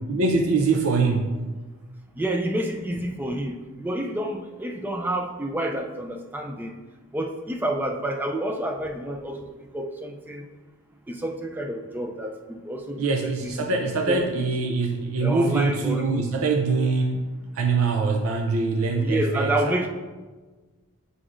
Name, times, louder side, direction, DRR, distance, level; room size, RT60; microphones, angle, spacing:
voice 1, 0.1-1.4 13.0-19.9, right 3 dB, 70° right, 3 dB, 0.5 m, -24 dB
voice 2, 2.2-6.7 7.1-9.4 9.7-10.4 11.1-13.7 14.0-14.4 15.2-16.3 18.9-19.9, right 1 dB, 10° right, 2 dB, 0.3 m, -29 dB
7.9 x 4.9 x 2.5 m, 1.3 s
head